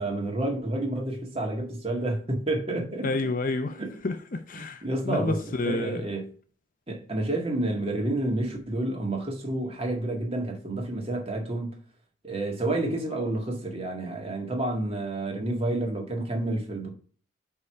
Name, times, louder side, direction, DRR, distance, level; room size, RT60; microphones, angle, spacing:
voice 1, 0.0-3.1 3.8-4.0 4.5-6.3 6.9-11.8 12.2-17.0, right 2 dB, 30° right, 1.7 m, -29 dB
voice 2, 3.0-6.1, left 2 dB, 40° left, 0.6 m, -30 dB
5.4 x 4.7 x 5.6 m
head